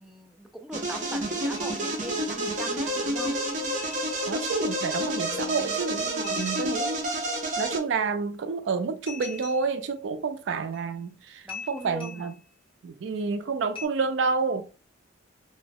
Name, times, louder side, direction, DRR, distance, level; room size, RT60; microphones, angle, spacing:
voice 1, 0.0-3.4 5.3-5.8 11.4-12.3, equal, 5° right, 0.3 m, -41 dB
sound 1, 0.7-7.8, right 1 dB, 40° right, 0.8 m, -29 dB
sound 2, 1.5-2.0 2.5-2.6 3.8-4.6 6.2-7.0 9.1-9.9 10.7-10.9 11.5-12.4 13.7-13.9, left 5 dB, 30° left, 0.9 m, -43 dB
voice 2, 4.3-7.2 7.6-12.4 12.8-14.6, right 5 dB, 80° right, 0.4 m, -29 dB
2.9 x 2.1 x 2.6 m
head